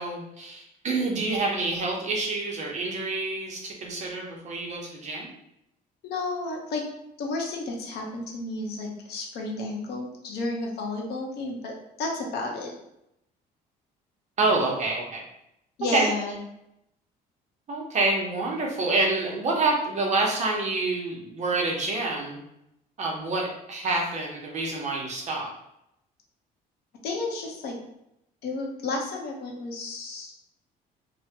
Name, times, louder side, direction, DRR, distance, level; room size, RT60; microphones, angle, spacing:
voice 1, 0.0-5.3 14.4-15.2 15.9-16.1 17.7-22.4 23.0-25.5, right 3 dB, 45° right, -1 dB, 0.8 m, -27 dB
voice 2, 6.0-6.8 7.2-11.7 12.0-12.7 15.8-16.4 27.0-27.7 28.4-30.3, left 2 dB, 75° left, 0 dB, 0.8 m, -32 dB
2.8 x 2.1 x 2.8 m, 0.82 s
cardioid pair, 110°, 17 cm